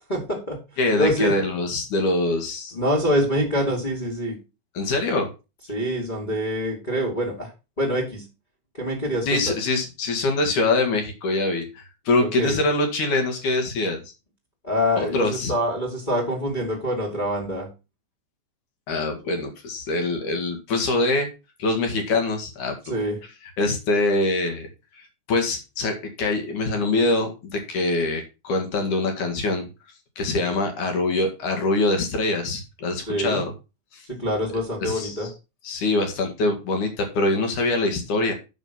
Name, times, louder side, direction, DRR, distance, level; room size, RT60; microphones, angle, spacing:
voice 1, 0.1-0.6 1.0-1.3 2.7-4.4 5.7-7.5 7.8-8.2 8.7-9.5 12.2-12.5 14.6-17.7 22.8-23.2 33.1-33.4 34.1-35.3, equal, 15° left, -5 dB, 1.7 m, -25 dB
voice 2, 0.8-2.7 4.7-5.3 9.3-14.0 15.0-15.5 18.9-21.3 21.6-22.7 23.6-24.7 25.0-29.6 30.2-33.5 33.9-34.1 34.8-35.2 35.6-38.3, left 2 dB, 55° left, 4 dB, 2.5 m, -24 dB
9.2 x 6.4 x 5.7 m, 0.29 s
omnidirectional pair, 5.7 m